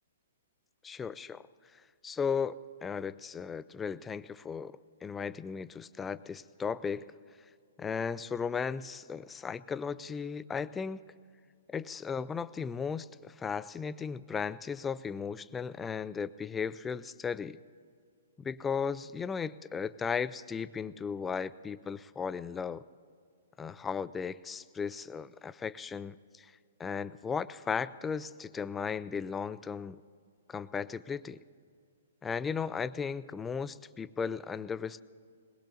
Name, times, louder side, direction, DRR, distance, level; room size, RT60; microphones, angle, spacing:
voice 1, 0.8-1.4 2.0-7.1 7.8-11.0 11.7-17.6 18.4-22.8 23.6-26.5 26.8-30.0 30.5-31.4 32.2-35.0, left 6 dB, 15° left, 15 dB, 0.4 m, -36 dB
21.5 x 21.0 x 2.7 m, 2.2 s
hypercardioid pair, 125°, 0 cm